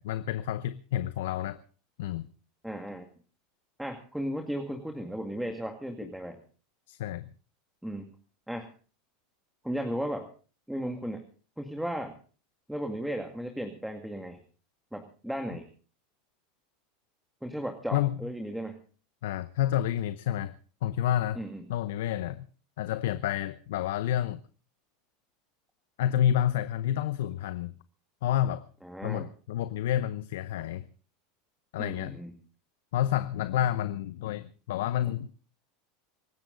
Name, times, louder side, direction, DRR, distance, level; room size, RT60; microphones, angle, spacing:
voice 1, 0.0-1.6 2.0-2.3 6.9-7.3 17.9-18.2 19.2-20.6 20.8-21.4 21.7-22.5 22.8-24.4 26.0-27.7 28.2-28.7 29.0-30.8 31.7-32.2 32.9-35.3, left 11 dB, 75° left, 0.8 m, -29 dB
voice 2, 2.6-3.0 3.8-6.4 7.8-8.1 8.5-8.7 9.6-10.3 10.7-11.2 11.6-12.1 12.7-14.4 14.9-15.7 17.4-18.8 21.4-21.6 28.8-29.3 31.8-32.3, equal, 5° right, 2.1 m, -35 dB
24.5 x 13.0 x 3.9 m
hypercardioid pair, 105°, 0 cm